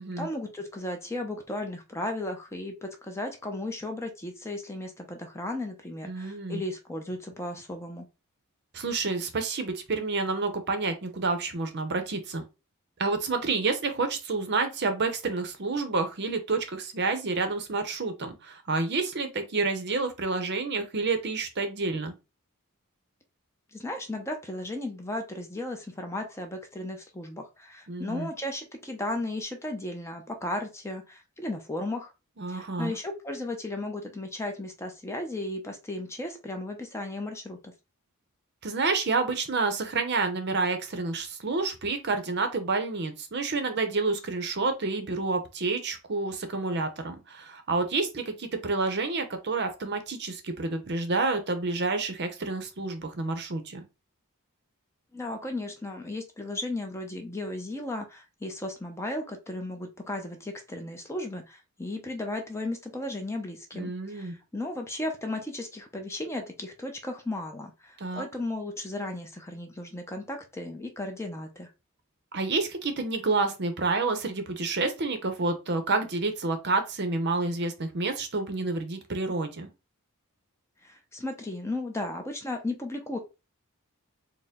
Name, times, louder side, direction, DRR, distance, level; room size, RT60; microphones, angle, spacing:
voice 1, 0.0-8.1 23.7-32.1 32.5-37.7 55.1-71.7 80.8-83.2, left 1 dB, 10° left, 0.6 m, -35 dB
voice 2, 6.0-6.6 8.7-12.4 13.0-22.1 27.9-28.3 32.4-32.9 38.6-53.8 63.7-64.3 68.0-68.3 72.3-79.7, right 3 dB, 50° right, 0.7 m, -29 dB
4.3 x 2.1 x 3.5 m
head